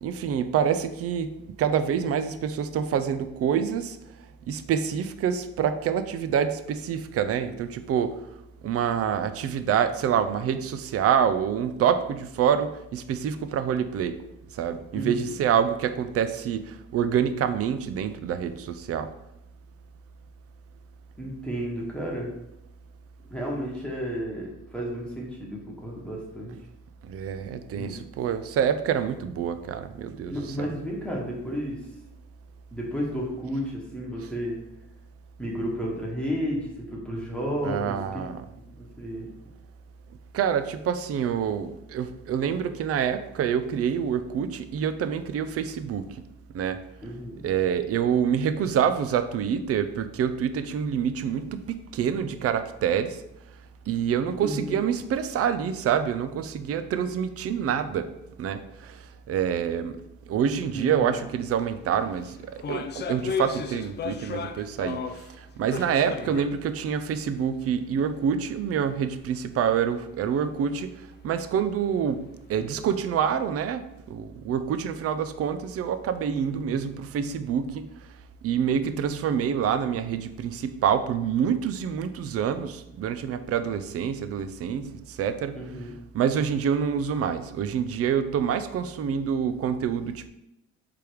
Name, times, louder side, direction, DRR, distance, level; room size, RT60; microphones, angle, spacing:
voice 1, 0.0-1.3 1.6-4.0 4.5-8.1 8.6-14.2 14.5-19.1 27.0-30.7 37.6-38.4 40.3-46.2 46.5-46.8 47.4-53.2 53.9-58.1 58.4-59.0 59.3-60.0 60.3-65.0 65.4-70.9 71.2-77.8 78.4-85.7 86.1-90.3, right 8 dB, 50° right, 11 dB, 0.4 m, -27 dB
voice 2, 14.9-15.3 21.2-22.3 23.3-26.5 27.7-27.9 30.2-31.8 32.7-34.6 35.4-38.2 38.8-39.3 47.0-47.4 54.4-54.8 60.7-61.1 76.5-76.8 85.5-85.9, equal, 5° left, -4 dB, 1.1 m, -32 dB
sound 1, 61.5-61.7 61.9-65.3 65.7-66.6 66.9-67.0 67.7-67.8, left 6 dB, 35° left, 0.4 m, -34 dB
3.4 x 3.4 x 4.5 m, 0.85 s
cardioid pair, 90°, 30 cm